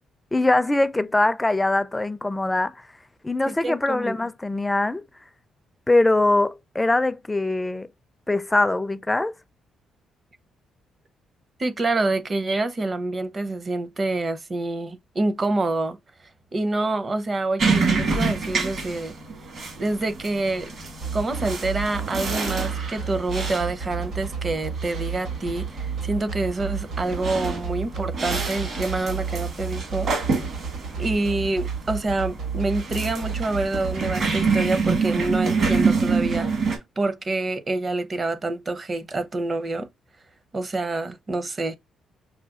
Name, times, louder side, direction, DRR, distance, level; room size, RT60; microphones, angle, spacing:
voice 1, 0.3-2.9 3.2-5.0 5.9-7.9 8.3-9.3, left 2 dB, 15° left, 0.4 m, -22 dB
voice 2, 3.5-4.2 11.6-16.0 16.5-19.1 19.8-20.7 21.1-30.1 31.0-36.6 37.0-39.9 40.5-41.8, right 2 dB, 35° right, 0.6 m, -27 dB
sound 1, 17.6-36.8, right 4 dB, 60° right, 1.5 m, -27 dB
sound 2, 21.0-34.2, right 6 dB, 80° right, 2.1 m, -31 dB
5.7 x 2.2 x 2.4 m
cardioid pair, 90°, 0 cm